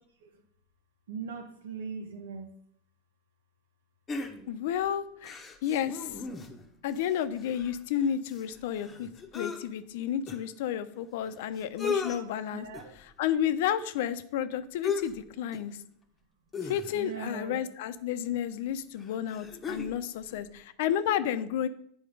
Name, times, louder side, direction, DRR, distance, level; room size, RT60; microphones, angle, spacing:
voice 1, 1.1-2.5 12.5-12.9 16.9-17.6, right 5 dB, 90° right, 6 dB, 1.3 m, -39 dB
sound 1, 4.1-4.7 5.2-6.7 7.0-7.1 7.3-9.6 10.3-10.4 11.3-11.4 11.6-12.2 12.7-13.0 14.8-15.2 15.5-15.7 16.5-17.2 18.3-18.4 19.0-20.0 20.3-20.4, left 5 dB, 15° left, 1.0 m, -36 dB
voice 2, 4.5-6.1 6.8-9.1 9.3-12.7 13.2-15.8 16.6-21.7, left 9 dB, 65° left, 12 dB, 0.6 m, -31 dB
8.6 x 4.3 x 5.4 m, 0.66 s
supercardioid pair, 145°, 0 cm